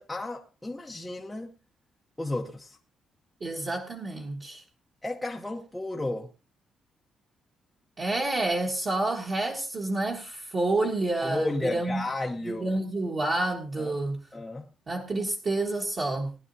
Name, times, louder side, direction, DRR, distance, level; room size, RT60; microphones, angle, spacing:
voice 1, 0.0-1.5 2.2-2.8 5.0-6.3 11.2-12.7 13.8-14.0 14.3-14.6, left 2 dB, 5° left, 0.8 m, -33 dB
voice 2, 3.4-4.6 8.0-12.0 12.4-14.2 14.9-16.3, right 2 dB, 35° right, 1.6 m, -29 dB
19.5 x 11.0 x 2.7 m
cardioid pair, 160°, 0 cm